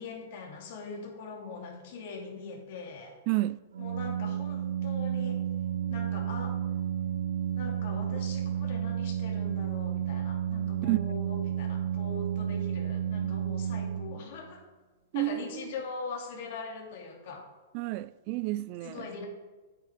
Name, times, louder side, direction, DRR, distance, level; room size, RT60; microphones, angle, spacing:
voice 1, 0.0-3.2 3.8-5.4 5.9-6.6 7.5-14.6 15.1-17.5 18.8-19.3, left 4 dB, 55° left, 2.5 m, -41 dB
voice 2, 3.3-3.6 10.9-11.0 15.1-15.7 17.7-19.1, right 19 dB, 45° right, 0.3 m, -30 dB
Organ, 3.7-14.5, right 9 dB, 85° right, 0.6 m, -32 dB
8.6 x 6.2 x 5.0 m
hypercardioid pair, 145°, 0 cm